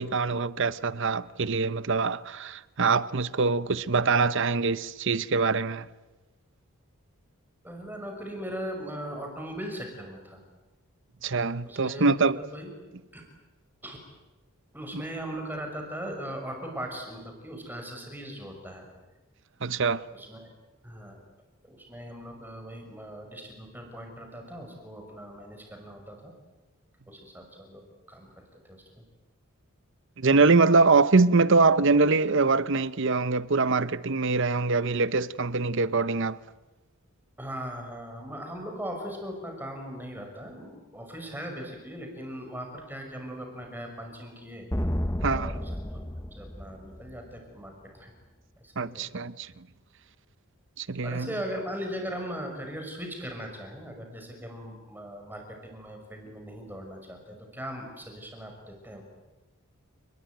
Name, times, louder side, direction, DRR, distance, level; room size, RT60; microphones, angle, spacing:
voice 1, 0.0-5.9 11.2-12.4 14.9-15.0 19.6-20.0 30.2-36.4 45.2-45.5 48.8-49.5 50.8-51.3, right 4 dB, 55° right, 0.8 m, -24 dB
voice 2, 7.6-10.4 11.6-12.7 13.1-13.2 13.8-14.0 14.7-18.9 20.1-20.5 20.8-21.2 21.6-26.3 27.1-27.8 28.1-28.8 37.4-44.7 45.3-46.0 46.4-48.1 48.6-49.1 51.0-59.0, equal, 10° right, 6.0 m, -39 dB
sound 1, 44.7-47.4, left 1 dB, 15° left, 0.8 m, -31 dB
30.0 x 21.0 x 9.3 m
head